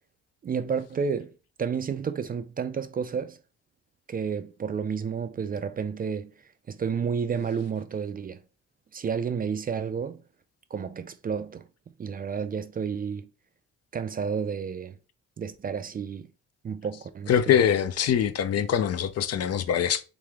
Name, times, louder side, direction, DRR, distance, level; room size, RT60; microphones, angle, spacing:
voice 1, 0.4-1.3 1.6-3.4 4.1-6.3 6.7-8.4 8.9-10.2 10.7-11.7 12.0-13.3 13.9-15.0 15.4-16.3 16.6-17.6, right 6 dB, 30° right, 0.3 m, -31 dB
voice 2, 17.3-20.0, left 9 dB, 55° left, 0.5 m, -23 dB
3.3 x 3.3 x 3.5 m
cardioid pair, 90°, 30 cm